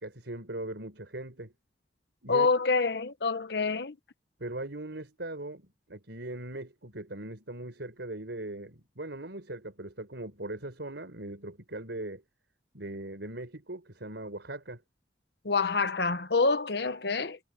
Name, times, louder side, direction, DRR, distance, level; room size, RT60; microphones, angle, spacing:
voice 1, 0.0-1.5 2.2-2.5 4.4-12.2 12.7-14.8, right 2 dB, 75° right, 4.6 m, -40 dB
voice 2, 2.3-4.0 15.4-17.4, left 4 dB, 65° left, 1.1 m, -27 dB
head